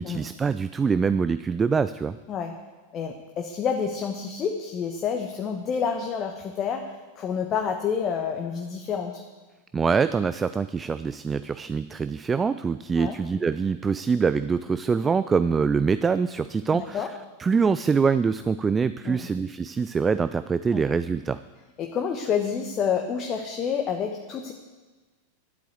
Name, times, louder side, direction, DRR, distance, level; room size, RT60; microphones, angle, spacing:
voice 1, 0.0-2.2 9.7-17.1 17.4-21.4, right 5 dB, 15° right, 13 dB, 0.4 m, -24 dB
voice 2, 2.9-9.2 13.0-13.2 16.7-17.1 19.0-19.3 20.7-20.8 21.8-24.5, left 7 dB, 30° left, 3 dB, 1.2 m, -28 dB
12.0 x 8.3 x 8.2 m, 1.3 s
figure-of-eight pair, 90°, 0 cm